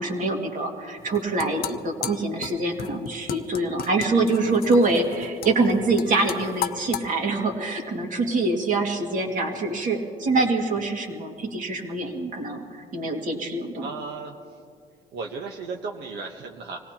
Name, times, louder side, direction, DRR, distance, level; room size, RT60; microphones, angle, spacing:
voice 1, 0.0-13.9, right 2 dB, 50° right, 2 dB, 2.1 m, -25 dB
sound 1, 1.0-7.1, left 10 dB, 60° left, 0.7 m, -35 dB
voice 2, 13.8-14.4 15.1-16.8, right 4 dB, 80° right, 1 dB, 1.1 m, -35 dB
25.5 x 18.0 x 2.9 m, 2.4 s
cardioid pair, 125°, 17 cm